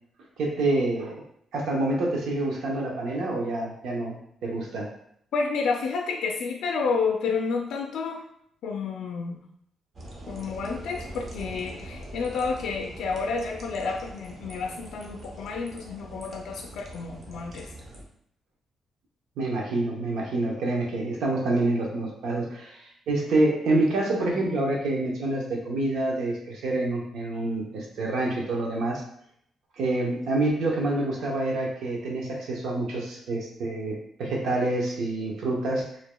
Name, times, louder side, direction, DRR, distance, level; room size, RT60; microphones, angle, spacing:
voice 1, 0.4-1.2 1.5-4.2 4.4-4.9 19.4-29.0 29.8-35.9, right 2 dB, 85° right, -1 dB, 0.8 m, -27 dB
voice 2, 5.3-8.3 8.6-9.4 10.3-17.7, left 4 dB, 80° left, 2 dB, 0.4 m, -30 dB
sound 1, 9.9-18.0, right 1 dB, 40° right, 0.8 m, -42 dB
4.8 x 2.8 x 2.2 m, 0.70 s
cardioid pair, 145°, 0 cm